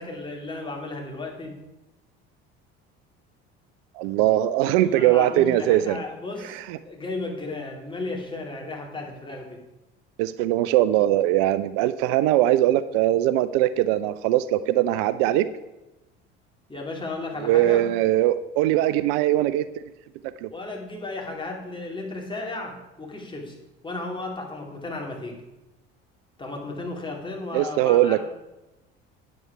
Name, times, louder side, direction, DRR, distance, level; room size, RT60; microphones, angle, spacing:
voice 1, 0.0-1.6 4.7-6.6 6.8-9.6 16.7-17.8 20.5-23.6 23.8-25.4 26.4-28.2, left 2 dB, 15° left, 0 dB, 2.7 m, -34 dB
voice 2, 4.0-6.0 10.2-15.5 17.4-19.6 20.4-20.5 27.5-28.2, right 13 dB, 65° right, 14 dB, 0.5 m, -21 dB
9.3 x 7.8 x 4.8 m, 1.0 s
hypercardioid pair, 65°, 33 cm